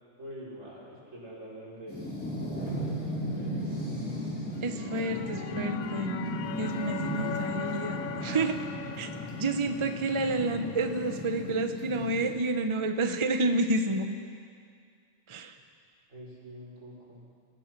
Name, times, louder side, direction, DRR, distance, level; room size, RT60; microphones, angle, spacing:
voice 1, 0.2-2.1 2.9-4.0 16.1-17.3, equal, 60° right, -6 dB, 5.5 m, -46 dB
sound 1, 1.9-12.3, equal, 5° left, 5.2 m, -35 dB
sound 2, 4.6-11.5, left 8 dB, 80° left, 1.2 m, -41 dB
voice 2, 4.6-6.2 6.6-8.7 9.0-9.1 9.4-14.2 15.3-15.6, right 2 dB, 25° right, 7 dB, 0.7 m, -29 dB
27.0 x 16.0 x 6.0 m, 2.2 s
omnidirectional pair, 1.5 m